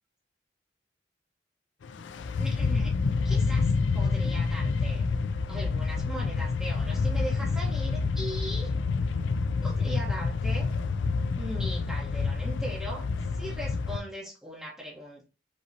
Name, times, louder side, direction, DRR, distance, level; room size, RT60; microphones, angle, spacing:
sound 1, 1.8-14.0, left 4 dB, 90° left, 0.4 m, -28 dB
voice 1, 2.4-3.0 3.2-5.0 5.5-8.7 9.6-10.7 11.3-13.1 13.3-15.2, right 1 dB, 5° right, -6 dB, 1.2 m, -39 dB
5.2 x 3.1 x 2.7 m, 0.28 s
head